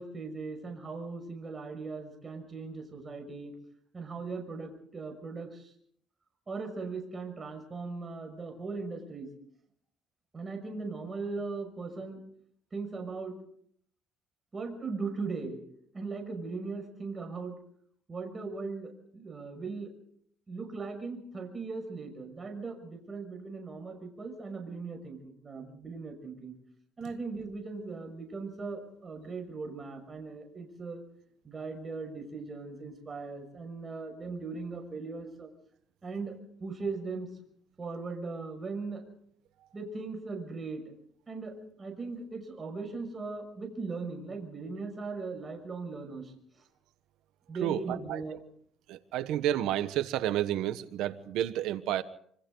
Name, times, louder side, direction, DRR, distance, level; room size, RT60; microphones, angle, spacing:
voice 1, 0.0-3.5 3.9-5.7 6.5-9.3 10.3-12.2 12.7-13.4 14.5-15.6 15.9-17.5 18.1-19.9 20.5-26.5 27.0-31.0 31.4-35.5 36.0-36.3 36.6-37.3 37.8-39.0 39.7-40.8 41.3-41.5 41.8-46.6 47.5-48.4, right 4 dB, 25° right, 3 dB, 5.9 m, -39 dB
voice 2, 47.6-48.2 48.9-52.0, right 12 dB, 85° right, 11 dB, 1.1 m, -30 dB
26.5 x 25.0 x 3.9 m, 0.63 s
cardioid pair, 115°, 0 cm